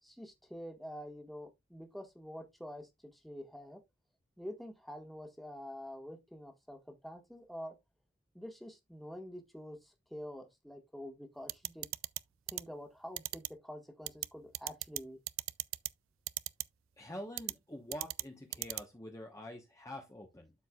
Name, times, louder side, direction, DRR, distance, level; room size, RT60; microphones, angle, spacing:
voice 1, 0.0-3.8 4.4-7.7 8.3-11.9 12.5-15.2, equal, ahead, 1.5 m, -47 dB
sound 1, 11.5-12.2 12.5-12.6 13.2-13.5 14.1-14.3 14.5-15.0 15.3-15.9 16.3-16.6 17.4-17.5 17.9-18.2 18.5-18.8, right 18 dB, 85° right, 0.4 m, -36 dB
voice 2, 17.0-20.5, left 1 dB, 15° left, 1.1 m, -46 dB
12.5 x 4.6 x 2.3 m
head